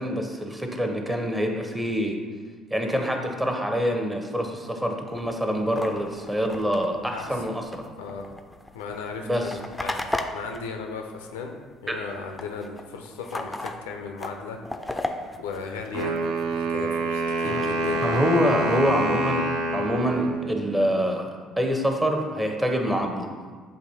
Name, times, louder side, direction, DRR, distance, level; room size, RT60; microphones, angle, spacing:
voice 1, 0.0-2.1 2.7-7.8 9.2-9.5 11.9-12.0 17.4-17.7 18.0-21.3 21.6-23.3, equal, 15° right, 3 dB, 0.7 m, -26 dB
sound 1, 5.1-11.7 12.0-16.6 17.0-19.2, left 1 dB, 10° left, 0.4 m, -37 dB
voice 2, 7.1-7.4 8.0-8.3 8.7-9.3 9.8-11.5 11.8-14.6 15.4-16.2 16.5-18.0, left 5 dB, 75° left, 3 dB, 0.4 m, -36 dB
Wind instrument woodwind instrument, 15.9-21.0, right 2 dB, 65° right, 0.4 m, -27 dB
7.3 x 2.7 x 2.7 m, 1.5 s
figure-of-eight pair, 55°, 0 cm